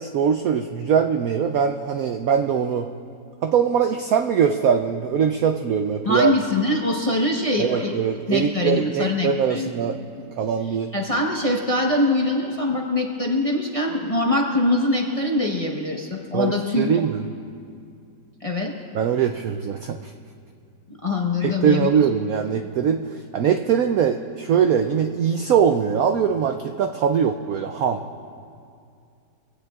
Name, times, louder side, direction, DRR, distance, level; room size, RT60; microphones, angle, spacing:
voice 1, 0.0-2.9 3.4-6.3 7.6-10.0 10.4-10.9 16.3-17.2 18.9-20.1 21.4-23.1 23.3-28.0, right 7 dB, 75° right, 6 dB, 0.8 m, -22 dB
voice 2, 6.0-7.9 8.3-9.7 10.9-16.9 18.4-18.7 21.0-21.9, left 2 dB, 25° left, -1 dB, 0.9 m, -23 dB
24.0 x 16.5 x 2.4 m, 2.4 s
omnidirectional pair, 2.1 m